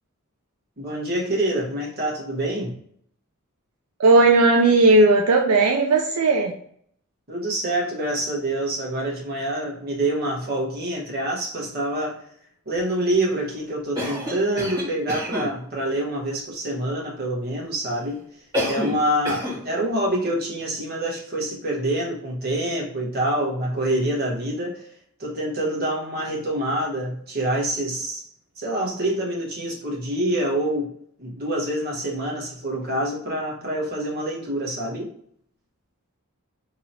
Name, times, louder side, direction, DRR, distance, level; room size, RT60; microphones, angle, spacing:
voice 1, 0.8-2.7 7.3-12.3 12.7-24.9 25.2-28.3 28.6-30.9 31.2-35.1, right 1 dB, 45° right, -2 dB, 1.1 m, -26 dB
voice 2, 4.0-6.6, right 2 dB, 80° right, 2 dB, 0.4 m, -16 dB
Cough, 13.9-15.5 18.5-19.0 19.2-19.6, equal, 20° right, 1.5 m, -28 dB
2.9 x 2.8 x 4.0 m, 0.64 s
head